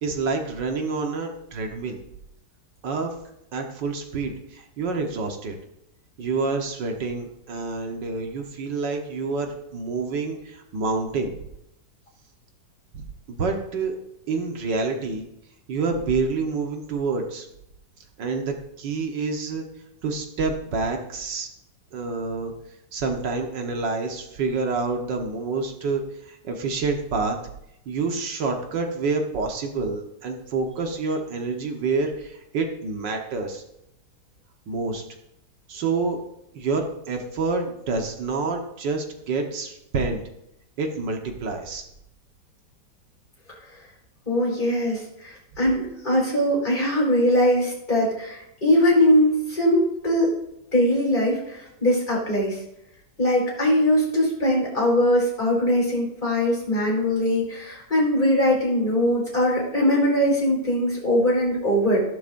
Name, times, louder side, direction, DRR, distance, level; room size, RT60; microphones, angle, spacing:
voice 1, 0.0-2.0 2.8-3.1 3.5-5.6 6.2-11.3 12.9-13.9 14.3-15.3 15.7-17.5 18.2-19.7 20.0-21.5 21.9-22.5 22.9-27.4 27.9-33.6 34.7-35.0 35.7-36.2 36.6-40.2 40.8-41.8, right 4 dB, 85° right, 3 dB, 2.0 m, -28 dB
voice 2, 44.3-50.3 50.7-52.6 53.2-62.0, equal, 25° left, -3 dB, 4.7 m, -21 dB
15.0 x 11.5 x 2.6 m, 0.81 s
omnidirectional pair, 1.9 m